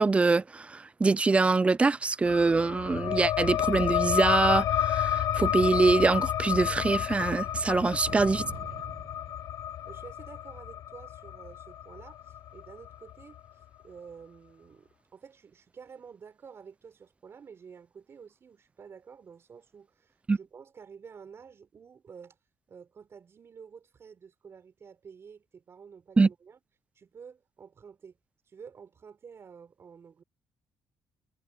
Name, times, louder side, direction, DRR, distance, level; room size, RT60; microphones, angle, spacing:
voice 1, 0.0-8.4 20.3-20.4 26.2-26.3, right 3 dB, 20° right, 0.4 m, -24 dB
sound 1, 2.3-13.4, left 11 dB, 65° left, 0.6 m, -31 dB
sound 2, 8.1-10.0, right 10 dB, 60° right, 1.0 m, -44 dB
voice 2, 9.9-13.4 13.8-22.4 22.7-26.6 27.0-28.2 28.5-30.2, right 6 dB, 40° right, 5.4 m, -50 dB
cardioid pair, 100°, 6 cm